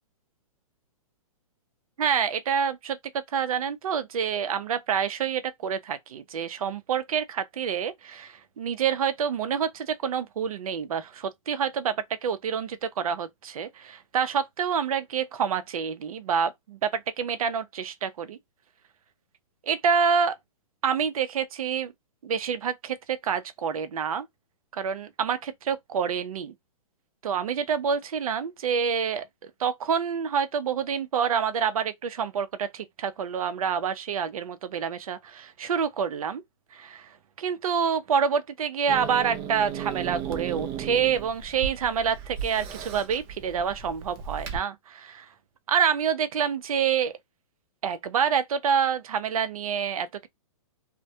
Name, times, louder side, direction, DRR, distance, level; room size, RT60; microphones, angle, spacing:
voice 1, 2.0-18.4 19.7-20.4 20.8-21.9 22.2-24.3 24.7-26.5 27.2-36.4 36.7-37.1 37.4-45.3 45.7-47.1 47.8-50.3, right 7 dB, 80° right, 0.5 m, -27 dB
Growling / Hiss, 38.9-44.6, right 8 dB, 25° right, 0.4 m, -36 dB
2.1 x 2.1 x 2.7 m
hypercardioid pair, 150°, 18 cm